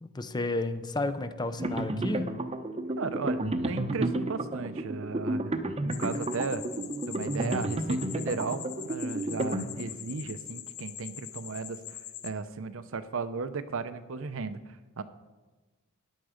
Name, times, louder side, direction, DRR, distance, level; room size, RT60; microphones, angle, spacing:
voice 1, 0.0-2.3, left 2 dB, 20° left, 10 dB, 0.6 m, -32 dB
sound 1, 1.6-10.2, right 1 dB, 30° right, 0.8 m, -32 dB
voice 2, 3.0-6.6 7.1-12.0 12.2-15.0, right 4 dB, 65° right, 11 dB, 0.7 m, -35 dB
sound 2, 5.9-12.3, left 11 dB, 75° left, 0.8 m, -43 dB
14.0 x 10.0 x 5.0 m, 1.2 s
head